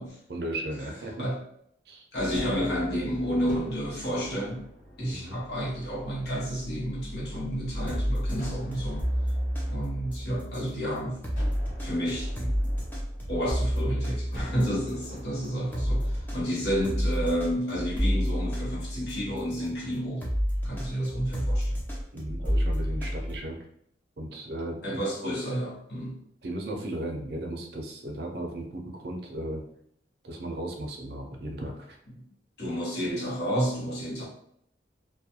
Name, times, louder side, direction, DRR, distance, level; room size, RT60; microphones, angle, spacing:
voice 1, 0.3-1.2 1.9-2.1 5.1-5.4 22.1-23.6 24.2-25.0 26.4-29.6 30.2-32.0, right 1 dB, 60° right, 2 dB, 0.5 m, -36 dB
voice 2, 2.1-4.6 5.0-9.1 9.7-11.2 11.8-12.6 13.3-20.3 20.6-21.8 24.8-26.2 32.1-32.2 32.6-34.3, equal, 65° left, -5 dB, 0.9 m, -30 dB
sound 1, 2.2-13.9, equal, 10° right, 0.9 m, -43 dB
Gunshot gunfire, 2.3-7.5 8.4-10.8 11.3-13.8 14.3-19.5, equal, 45° left, 1.1 m, -47 dB
sound 2, 7.7-19.7 20.2-23.4, equal, 10° left, 0.5 m, -30 dB
2.3 x 2.2 x 2.8 m, 0.69 s
head